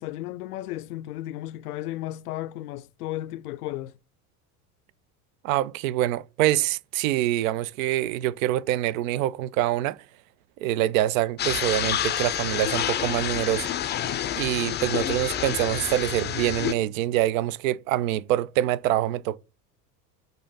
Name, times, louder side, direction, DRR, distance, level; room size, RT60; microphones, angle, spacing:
voice 1, 0.0-3.9, left 15 dB, 70° left, 0.5 m, -34 dB
voice 2, 5.4-10.0 10.6-13.7 14.4-19.4, right 14 dB, 60° right, 0.5 m, -25 dB
sound 1, 11.4-16.7, left 10 dB, 25° left, 0.5 m, -28 dB
6.6 x 2.6 x 5.5 m
figure-of-eight pair, 75°, 47 cm